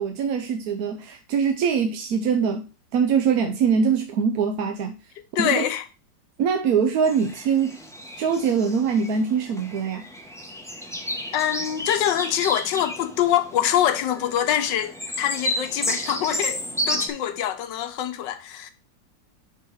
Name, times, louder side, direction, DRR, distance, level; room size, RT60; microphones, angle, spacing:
voice 1, 0.0-2.7 2.9-4.9 5.4-5.6 6.4-7.8 8.2-10.0, right 6 dB, 65° right, 1.0 m, -23 dB
voice 2, 5.3-5.8 11.3-18.7, left 11 dB, 75° left, 1.4 m, -24 dB
sound 1, 7.0-17.1, equal, 5° left, 0.5 m, -32 dB
5.6 x 3.9 x 6.0 m
omnidirectional pair, 2.0 m